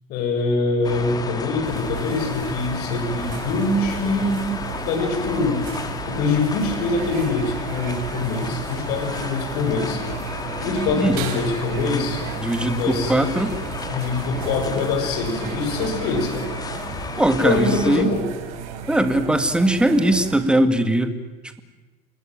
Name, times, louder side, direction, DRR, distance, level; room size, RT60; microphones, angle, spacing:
voice 1, 0.1-4.5 4.8-5.6 6.1-10.0 10.6-12.2 12.7-13.4 13.9-16.5 17.4-18.2, left 3 dB, 60° left, 3 dB, 7.0 m, -24 dB
sound 1, 0.8-18.0, left 4 dB, 20° left, 2.3 m, -33 dB
sound 2, 1.6-20.4, right 6 dB, 80° right, 5.1 m, -34 dB
voice 2, 12.4-13.6 17.2-18.1 18.9-21.1 21.4-21.6, right 1 dB, 5° right, 9 dB, 2.1 m, -20 dB
28.0 x 20.0 x 9.2 m, 1.2 s
cardioid pair, 140°, 19 cm